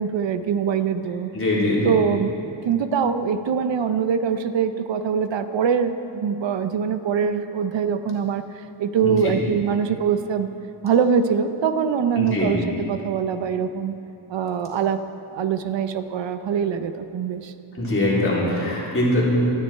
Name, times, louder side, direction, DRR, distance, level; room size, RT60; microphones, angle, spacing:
voice 1, 0.0-1.3 1.8-2.3 2.6-10.5 10.8-13.9 14.3-15.0 15.3-17.5, right 7 dB, 65° right, 10 dB, 0.8 m, -23 dB
voice 2, 1.3-1.8 9.0-9.3 12.2-12.5 17.7-19.2, left 1 dB, 25° left, -7 dB, 3.8 m, -22 dB
19.0 x 13.5 x 4.5 m, 2.9 s
wide cardioid pair, 145°, 49 cm